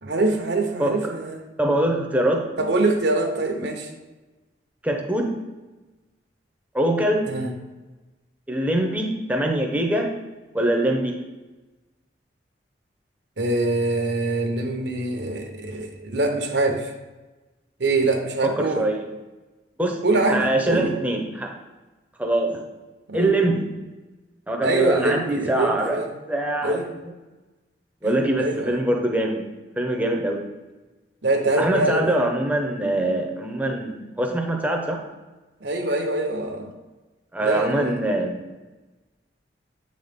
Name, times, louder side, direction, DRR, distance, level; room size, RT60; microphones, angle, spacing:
voice 1, 0.0-1.4 2.6-3.9 7.3-7.5 13.4-16.9 17.8-18.9 20.0-21.0 23.1-23.3 24.6-26.1 26.6-26.9 28.0-28.7 31.2-32.1 35.6-36.7 37.4-37.9, right 2 dB, 70° right, 4 dB, 0.9 m, -24 dB
voice 2, 1.6-2.5 4.8-5.3 6.7-7.3 8.5-10.1 10.5-11.2 18.4-19.0 19.8-20.0 20.3-21.5 22.2-22.6 23.1-23.7 24.5-26.0 26.3-26.8 28.0-29.5 29.8-30.4 31.6-35.0 37.3-38.4, right 1 dB, 10° right, 2 dB, 0.7 m, -23 dB
8.1 x 4.0 x 3.5 m, 1.2 s
head